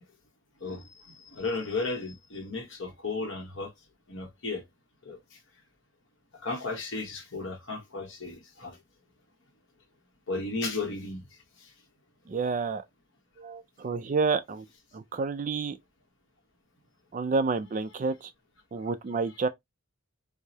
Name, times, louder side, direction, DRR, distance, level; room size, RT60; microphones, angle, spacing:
voice 1, 1.3-3.7 4.1-4.6 5.1-5.2 6.4-8.8 10.3-11.2, left 3 dB, 60° left, 1.1 m, -34 dB
voice 2, 12.3-12.8 13.4-14.6 14.9-15.8 17.1-18.3 18.7-19.5, right 4 dB, 35° right, 0.3 m, -29 dB
4.6 x 2.0 x 2.7 m
head